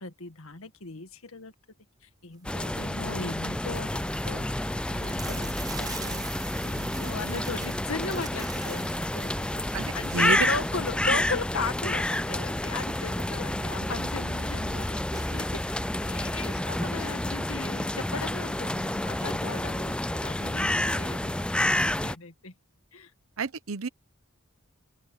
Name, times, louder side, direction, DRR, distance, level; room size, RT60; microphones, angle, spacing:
voice 1, 0.0-1.5 2.2-4.5 4.9-9.6 9.9-22.5 22.9-23.1, left 4 dB, 70° left, 1.9 m, -37 dB
sound 1, 2.2-2.6 3.3-3.4 3.6-3.7 4.0-13.6 13.9-14.0 14.4-14.5 15.1-17.4 18.3-18.4 18.7-19.9, right 5 dB, 20° right, 5.2 m, -46 dB
sound 2, 2.4-22.1, left 1 dB, 5° left, 0.3 m, -29 dB
voice 2, 9.7-10.5 23.4-23.9, right 4 dB, 70° right, 0.8 m, -30 dB
open air
head